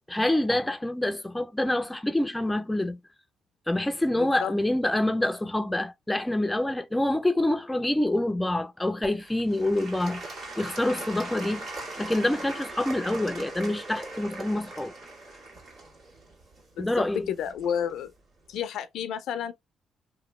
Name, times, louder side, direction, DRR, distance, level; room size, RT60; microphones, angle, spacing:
voice 1, 0.0-3.0 3.7-10.2 10.6-11.6 12.0-14.9 16.8-17.3, left 1 dB, 10° left, 0.4 m, -26 dB
voice 2, 4.2-4.6 16.8-18.1 18.5-19.5, left 8 dB, 80° left, 0.4 m, -31 dB
Applause / Crowd, 9.0-17.9 18.5-18.6, right 2 dB, 60° right, 1.7 m, -40 dB
2.9 x 2.3 x 3.0 m
cardioid pair, 90°, 0 cm